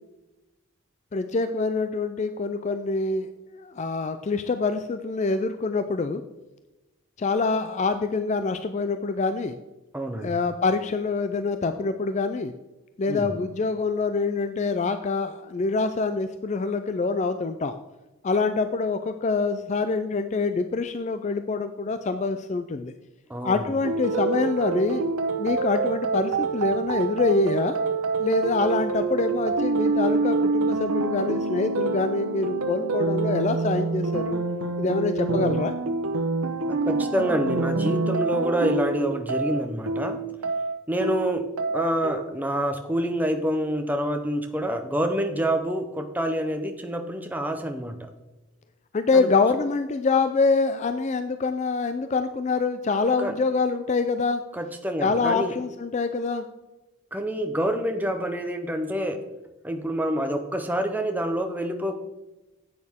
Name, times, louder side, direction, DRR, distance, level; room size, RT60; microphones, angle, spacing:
voice 1, 1.1-6.2 7.2-9.6 10.2-12.5 13.0-17.8 18.2-22.9 23.4-25.0 25.4-27.8 28.2-34.4 34.8-35.7 48.9-54.4 55.0-56.4, left 4 dB, 30° left, 9 dB, 0.3 m, -25 dB
voice 2, 9.9-10.3 13.1-13.3 23.3-23.6 36.7-40.2 40.9-41.5 41.7-48.1 49.1-49.5 53.2-53.3 54.5-55.5 57.1-59.2 59.6-61.9, equal, 10° right, 5 dB, 0.6 m, -27 dB
sound 1, 23.8-42.2, right 3 dB, 90° right, 0.9 m, -26 dB
10.5 x 8.6 x 3.6 m, 1.1 s
head